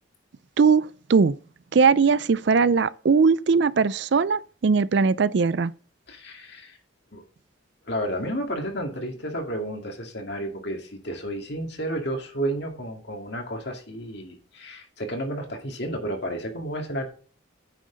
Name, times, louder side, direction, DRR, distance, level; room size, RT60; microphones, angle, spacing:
voice 1, 0.6-1.3 1.7-5.7, right 5 dB, 55° right, 0.4 m, -20 dB
voice 2, 6.1-6.8 7.1-7.2 7.8-17.1, right 1 dB, 55° left, 2.2 m, -31 dB
9.4 x 6.3 x 3.9 m
head